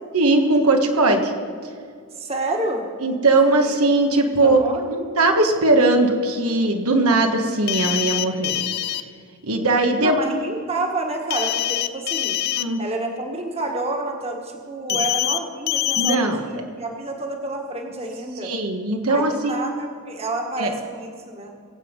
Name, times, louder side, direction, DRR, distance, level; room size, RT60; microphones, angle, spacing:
voice 1, 0.1-1.3 3.0-8.5 9.4-10.1 12.6-12.8 16.0-16.4 18.4-19.6 20.6-20.7, right 2 dB, 90° right, 4 dB, 1.5 m, -19 dB
voice 2, 2.2-2.9 4.4-4.8 10.0-12.4 12.8-18.5 19.1-21.5, right 2 dB, 30° right, 2 dB, 1.5 m, -29 dB
sound 1, 7.7-9.0 11.3-12.6 14.9-15.4 15.7-16.2, left 13 dB, 45° left, 0.5 m, -24 dB
23.5 x 8.1 x 5.3 m, 2.2 s
head